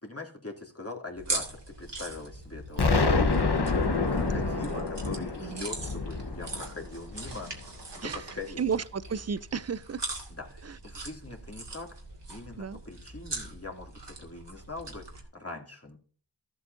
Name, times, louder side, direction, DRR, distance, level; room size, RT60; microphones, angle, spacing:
voice 1, 0.0-3.7 4.1-7.5 7.9-8.6 10.3-11.9 12.3-16.0, left 3 dB, 35° left, 2.5 m, -42 dB
sound 1, 1.2-15.2, right 2 dB, 75° right, 2.5 m, -41 dB
Explosion, 2.8-7.6, left 3 dB, 65° left, 1.2 m, -27 dB
voice 2, 4.3-4.9 5.4-5.7 8.0-8.2 8.6-10.0 12.6-12.8, right 6 dB, 35° right, 0.5 m, -33 dB
14.5 x 8.0 x 2.6 m
wide cardioid pair, 45°, 43 cm